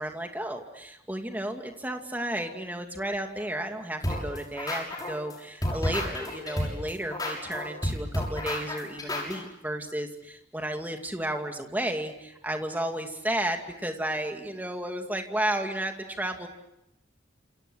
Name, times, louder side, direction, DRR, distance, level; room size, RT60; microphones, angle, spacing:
voice 1, 0.0-16.5, right 1 dB, 10° right, 4 dB, 2.4 m, -33 dB
sound 1, 4.0-5.3 5.6-9.3, left 1 dB, 20° left, 6.7 m, -30 dB
28.5 x 28.5 x 6.4 m, 0.84 s
head